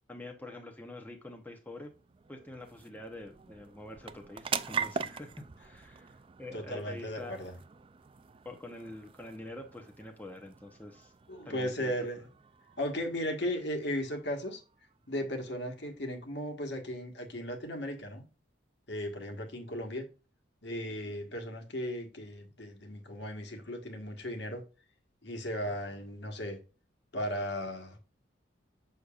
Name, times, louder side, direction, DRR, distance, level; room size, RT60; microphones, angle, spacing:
voice 1, 0.1-1.9 2.3-7.4 8.4-11.1 11.4-11.9, left 2 dB, 10° left, 0.8 m, -46 dB
sound 1, 1.1-15.9, right 6 dB, 30° right, 0.3 m, -43 dB
voice 2, 6.5-7.5 11.3-12.2 12.8-14.6 15.1-18.2 18.9-20.1 20.6-24.6 25.2-26.6 27.1-28.0, equal, 60° left, 1.4 m, -36 dB
6.8 x 6.5 x 2.4 m
head